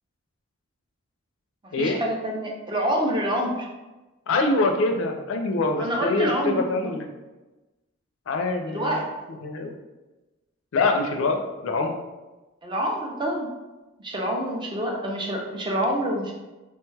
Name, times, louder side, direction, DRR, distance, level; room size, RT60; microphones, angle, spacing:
voice 1, 1.6-3.7 5.8-6.9 8.7-9.1 12.6-13.5 14.0-16.3, equal, 20° right, 0 dB, 0.4 m, -27 dB
voice 2, 4.3-7.1 8.3-9.0 9.4-9.8 10.7-11.9, left 3 dB, 65° left, 4 dB, 0.4 m, -24 dB
3.0 x 2.2 x 3.2 m, 1.1 s
head